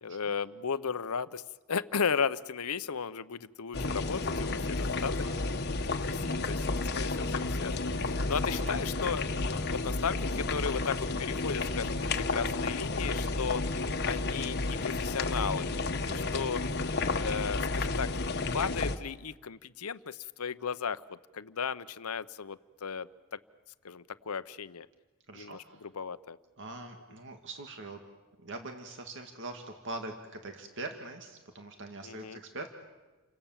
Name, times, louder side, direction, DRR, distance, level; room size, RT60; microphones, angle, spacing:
voice 1, 0.0-1.4 1.7-5.2 5.9-9.3 9.7-13.7 14.0-15.7 16.0-16.6 17.1-18.1 18.5-23.4 23.8-24.9 25.3-26.4 32.0-32.4, left 6 dB, 80° left, 14 dB, 0.8 m, -35 dB
sound 1, 3.7-19.0, left 3 dB, 50° left, 1.3 m, -32 dB
voice 2, 8.5-9.0 9.8-10.0 16.1-16.2 25.3-25.8 26.6-28.0 28.4-32.7, right 2 dB, 60° right, 4 dB, 2.2 m, -43 dB
30.0 x 24.5 x 7.4 m, 1.2 s
head